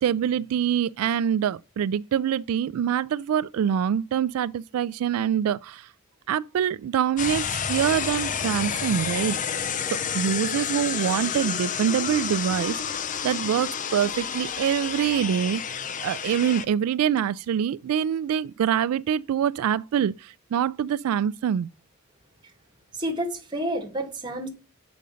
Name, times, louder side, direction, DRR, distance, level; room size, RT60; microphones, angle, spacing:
voice 1, 0.0-5.9 6.3-9.4 10.1-15.6 16.0-21.7, right 9 dB, 80° right, 0.3 m, -25 dB
sound 1, 7.2-16.6, left 7 dB, 35° left, 0.5 m, -30 dB
voice 2, 22.9-24.5, right 1 dB, 20° right, 1.8 m, -29 dB
6.7 x 5.3 x 6.2 m
head